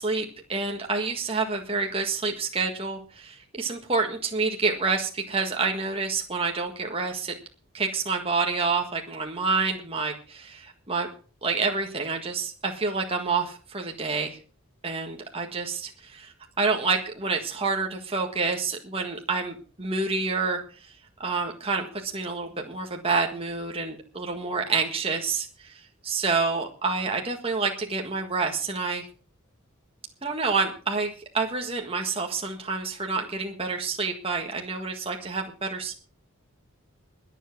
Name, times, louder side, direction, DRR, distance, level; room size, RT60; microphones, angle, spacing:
voice 1, 0.0-7.3 7.7-11.1 11.4-14.4 14.8-20.9 21.2-25.7 26.0-29.0 30.2-35.9, right 4 dB, 25° right, 2 dB, 1.7 m, -28 dB
21.5 x 7.5 x 6.0 m, 0.40 s
head